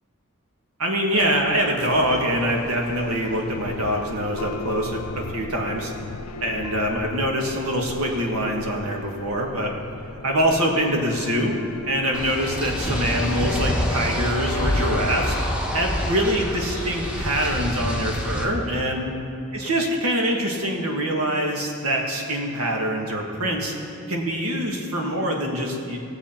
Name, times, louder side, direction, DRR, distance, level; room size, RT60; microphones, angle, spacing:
voice 1, 0.8-5.9 6.4-9.7 10.2-11.6 11.9-15.4 15.7-19.1 19.5-23.7 24.1-26.0, equal, 75° right, 1 dB, 1.5 m, -24 dB
sound 1, 1.1-15.4, left 4 dB, 80° left, 0.4 m, -37 dB
sound 2, 12.1-18.4, equal, 5° right, 1.1 m, -26 dB
16.5 x 7.2 x 4.3 m, 2.5 s
head